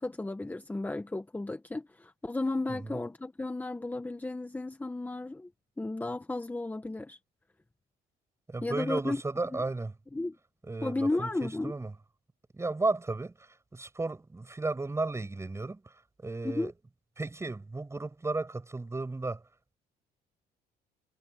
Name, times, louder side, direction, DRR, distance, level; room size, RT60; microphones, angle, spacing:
voice 1, 0.0-5.5 5.8-7.2 8.6-9.2 10.1-10.3 10.8-11.7 16.4-16.7, left 2 dB, 10° left, 1.3 m, -33 dB
voice 2, 2.7-3.0 8.5-9.9 10.6-11.9 12.5-15.9 16.2-16.7 17.2-19.4, right 3 dB, 15° right, 7.4 m, -34 dB
cardioid pair, 110°, 17 cm